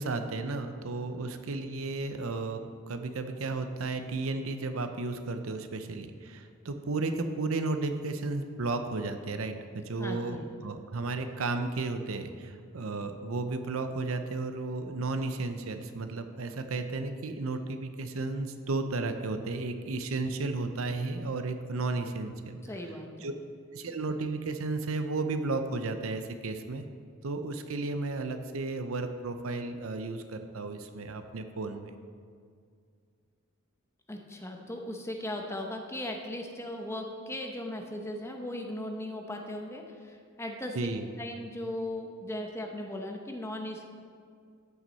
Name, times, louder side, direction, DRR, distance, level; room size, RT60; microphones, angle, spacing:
voice 1, 0.0-2.6 2.9-22.6 23.2-23.3 23.7-26.8 27.2-31.9 40.8-41.1, right 3 dB, 75° right, 8 dB, 0.7 m, -33 dB
voice 2, 10.0-10.4 22.6-23.3 34.1-40.8 41.2-43.8, left 1 dB, 10° left, 3 dB, 0.8 m, -38 dB
13.0 x 6.1 x 4.2 m, 2.2 s
head